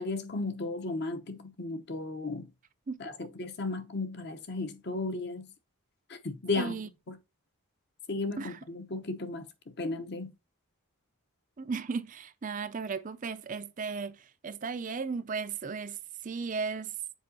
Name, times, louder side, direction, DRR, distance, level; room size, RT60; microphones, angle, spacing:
voice 1, 0.0-2.5 3.0-5.5 6.1-6.8 7.1-7.2 8.1-9.5 9.8-10.3, left 3 dB, 50° left, 0.9 m, -35 dB
voice 2, 6.6-6.9 8.4-8.6 11.6-16.9, right 5 dB, 35° right, 0.4 m, -35 dB
7.4 x 4.8 x 2.7 m
head